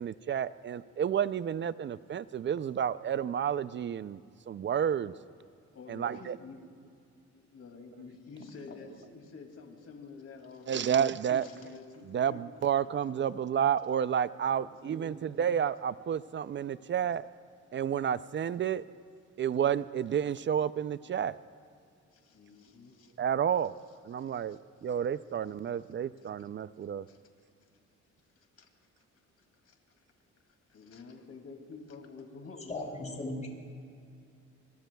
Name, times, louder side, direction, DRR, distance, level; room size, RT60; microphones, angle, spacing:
voice 1, 0.0-4.2 4.5-5.1 5.9-6.4 10.7-11.5 12.1-17.3 17.7-18.8 19.4-21.4 23.2-23.8 24.0-27.1, right 8 dB, 40° right, 16 dB, 0.4 m, -30 dB
voice 2, 5.7-6.6 7.3-11.0 11.3-12.4 14.9-15.6 22.1-23.1 24.2-24.6 26.2-26.3 27.1-27.2 28.4-28.7 29.6-29.8 30.7-33.5, left 4 dB, 55° left, 3 dB, 2.5 m, -49 dB
voice 3, 32.7-33.5, left 2 dB, 25° left, 0 dB, 5.1 m, -37 dB
27.0 x 23.0 x 2.3 m, 2.3 s
cardioid pair, 90°, 30 cm